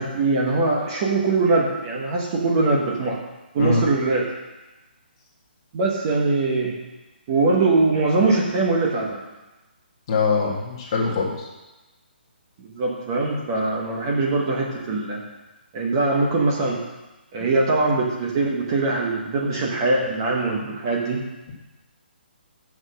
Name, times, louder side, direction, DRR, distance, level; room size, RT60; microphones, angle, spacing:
voice 1, 0.0-3.2 3.5-4.3 5.7-6.7 7.3-9.2 12.6-15.2 15.7-16.8 17.3-21.2, right 3 dB, 25° right, -1 dB, 1.0 m, -22 dB
voice 2, 10.1-11.5, left 4 dB, 25° left, -2 dB, 1.6 m, -22 dB
7.8 x 6.0 x 6.4 m, 1.1 s
hypercardioid pair, 170°, 6 cm